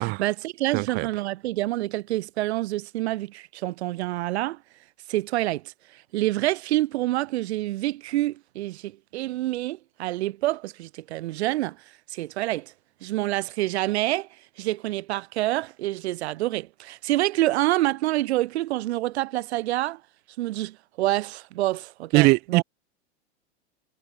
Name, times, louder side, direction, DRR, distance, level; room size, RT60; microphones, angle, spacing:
voice 1, 0.0-4.6 5.1-5.7 6.1-11.8 12.1-12.7 13.0-14.3 14.6-20.0 20.4-22.6, right 16 dB, 65° right, 3.7 m, -27 dB
voice 2, 0.7-1.1 22.1-22.6, right 23 dB, 30° right, 0.5 m, -21 dB
supercardioid pair, 145°, 34 cm